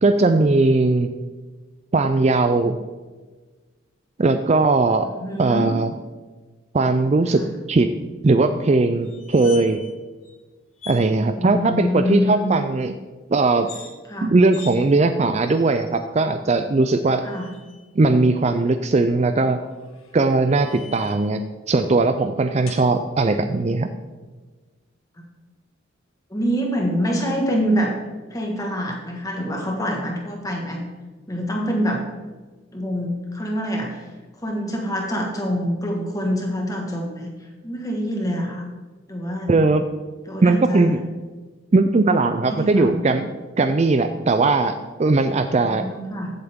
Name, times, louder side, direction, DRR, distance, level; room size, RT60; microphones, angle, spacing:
voice 1, 0.0-1.1 1.9-2.8 4.2-5.1 5.4-5.9 6.7-7.9 8.2-9.8 10.9-13.0 13.3-13.7 14.2-17.2 17.9-19.6 20.1-21.4 21.7-23.9 39.5-39.9 40.4-41.0 41.7-43.3 43.6-45.9, right 3 dB, 30° right, 8 dB, 0.4 m, -19 dB
voice 2, 5.0-5.7 7.3-7.5 11.3-12.5 14.1-14.3 17.2-17.5 26.3-28.0 28.3-30.8 31.3-32.0 32.7-34.0 34.4-37.3 37.6-38.6 39.1-39.6 40.3-41.0 42.4-43.1 45.6-46.3, equal, 15° left, 1 dB, 1.7 m, -25 dB
sound 1, 9.0-9.9 10.2-10.4 10.8-11.0 13.5-13.9 14.5-14.8 15.5-16.0 17.0-17.8 19.7-21.3 22.7-22.9, left 5 dB, 85° left, 2.0 m, -42 dB
15.0 x 7.8 x 3.7 m, 1.3 s
head